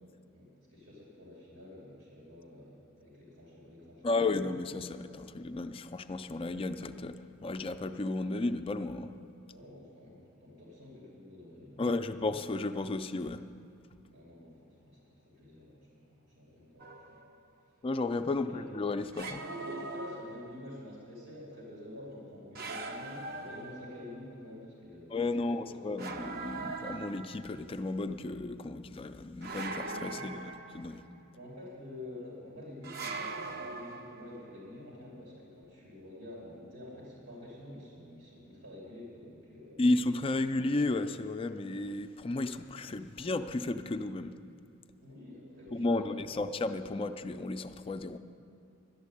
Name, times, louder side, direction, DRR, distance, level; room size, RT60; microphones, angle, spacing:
voice 1, 0.3-4.3 9.5-12.2 14.1-17.2 18.3-18.7 19.2-25.9 30.1-30.3 31.3-39.9 45.0-46.3, left 1 dB, 90° right, -5 dB, 2.8 m, -48 dB
voice 2, 4.0-9.1 11.8-13.4 17.8-19.4 25.1-30.4 30.7-31.0 39.8-44.4 45.7-48.2, left 2 dB, 25° left, 9 dB, 0.3 m, -33 dB
sound 1, 16.8-17.4 19.1-20.8 22.5-24.2 26.0-27.7 29.4-31.2 32.8-34.5, right 3 dB, 45° right, 0.6 m, -41 dB
12.0 x 7.3 x 9.8 m, 2.6 s
head